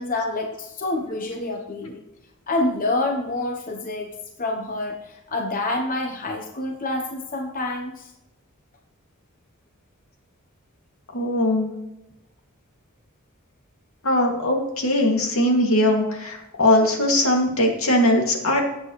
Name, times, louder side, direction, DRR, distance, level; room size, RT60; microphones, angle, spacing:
voice 1, 0.0-2.0 2.5-8.1, left 2 dB, 40° left, 2 dB, 1.0 m, -27 dB
voice 2, 11.1-11.7 14.0-18.6, left 1 dB, 75° left, 1 dB, 2.4 m, -20 dB
18.0 x 7.7 x 3.2 m, 0.95 s
head